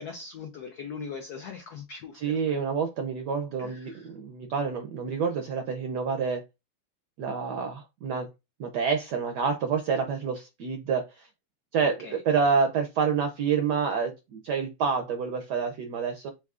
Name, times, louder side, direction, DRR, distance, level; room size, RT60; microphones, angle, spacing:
voice 1, 0.0-2.6 3.6-4.1 11.8-12.2, left 5 dB, 80° left, 0.8 m, -41 dB
voice 2, 2.1-6.4 7.2-8.3 8.6-11.3 11.7-16.3, right 6 dB, 75° right, 0.9 m, -28 dB
7.1 x 2.4 x 2.4 m
omnidirectional pair, 2.3 m